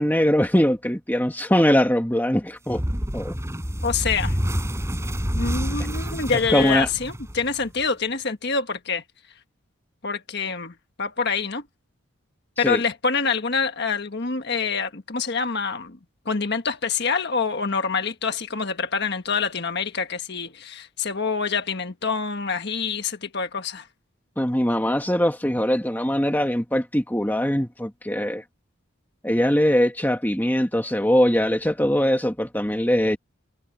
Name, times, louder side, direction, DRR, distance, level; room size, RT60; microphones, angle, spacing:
voice 1, 0.0-2.8 3.1-3.3 6.3-6.9 12.6-12.8 24.4-28.4 29.2-33.2, equal, 10° left, 1.8 m, -21 dB
sound 1, 2.7-7.8, equal, 15° right, 6.1 m, -28 dB
voice 2, 3.8-4.4 5.4-9.0 10.0-11.6 12.6-16.0 16.2-23.9, left 5 dB, 50° left, 1.5 m, -26 dB
head